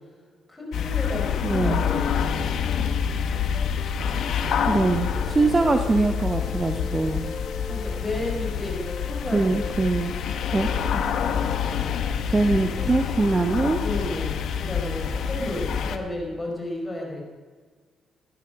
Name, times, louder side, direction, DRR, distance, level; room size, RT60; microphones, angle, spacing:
voice 1, 0.5-2.1 5.4-5.5 7.6-9.7 13.8-17.3, left 1 dB, 20° left, 0 dB, 4.8 m, -32 dB
sound 1, 0.7-16.0, left 7 dB, 70° left, 1.3 m, -27 dB
sound 2, 0.8-15.5, left 4 dB, 45° left, 1.4 m, -40 dB
voice 2, 1.4-1.8 4.7-7.2 9.3-10.1 10.5-11.0 12.3-13.8, right 3 dB, 25° right, 5 dB, 1.0 m, -23 dB
17.0 x 12.0 x 6.3 m, 1.5 s
cardioid pair, 90°, 0 cm